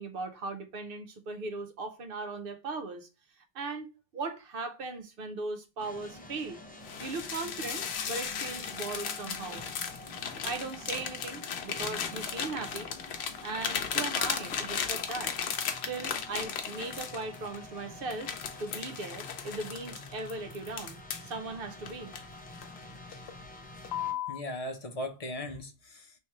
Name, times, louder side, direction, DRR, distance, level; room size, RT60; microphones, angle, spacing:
voice 1, 0.0-3.1 3.5-3.9 4.1-6.6 7.0-9.6 10.4-12.9 13.4-15.3 15.8-18.3 18.6-22.1, right 3 dB, 65° right, 0.8 m, -38 dB
sound 1, 5.8-24.1, left 1 dB, 10° left, 0.8 m, -48 dB
sound 2, 6.8-17.6 18.1-21.3 21.9-22.8 23.1-23.4 23.8-24.4, left 7 dB, 80° left, 0.9 m, -36 dB
voice 2, 24.3-26.2, left 1 dB, 40° left, 0.6 m, -38 dB
3.3 x 3.0 x 4.3 m
omnidirectional pair, 1.1 m